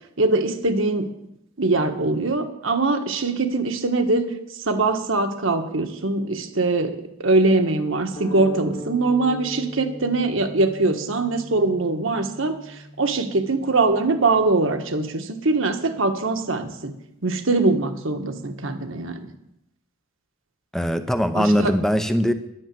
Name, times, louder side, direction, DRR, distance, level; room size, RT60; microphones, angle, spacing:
voice 1, 0.2-1.1 1.6-4.3 4.6-16.9 17.2-19.3 21.3-21.7, right 3 dB, 65° right, 6 dB, 1.4 m, -22 dB
sound 1, 8.2-16.5, left 2 dB, 40° left, 2.0 m, -41 dB
voice 2, 20.7-22.3, equal, ahead, 9 dB, 0.7 m, -21 dB
11.0 x 10.0 x 7.6 m, 0.84 s
head